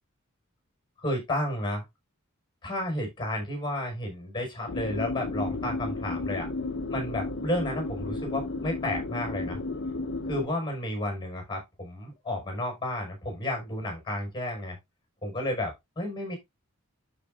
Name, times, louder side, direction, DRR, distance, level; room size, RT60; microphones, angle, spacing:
voice 1, 1.0-1.8 2.6-6.5 6.9-9.6 10.3-14.8 15.2-16.4, left 1 dB, 20° left, 5.2 m, -32 dB
sound 1, 4.7-10.5, left 2 dB, 55° left, 0.8 m, -33 dB
12.0 x 5.2 x 2.5 m
head